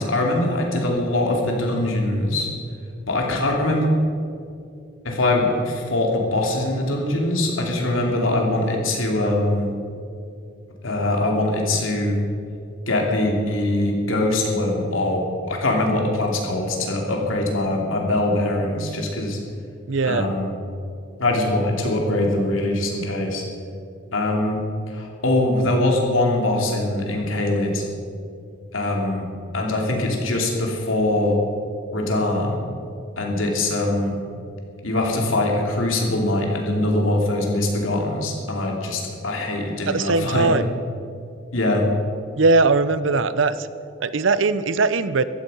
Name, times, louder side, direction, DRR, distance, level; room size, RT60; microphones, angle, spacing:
voice 1, 0.0-2.5 3.1-3.9 5.0-9.7 10.8-12.2 12.9-19.4 20.0-20.5 21.2-23.4 24.1-24.6 24.9-27.8 28.7-29.3 29.5-31.4 31.9-32.6 33.2-34.2 34.8-40.5 41.5-41.8, left 1 dB, 90° left, 0 dB, 2.8 m, -22 dB
voice 2, 19.9-20.3 39.9-40.7 42.4-43.7 44.0-45.2, right 3 dB, 70° right, 15 dB, 0.6 m, -20 dB
15.5 x 13.0 x 5.6 m, 2.5 s
head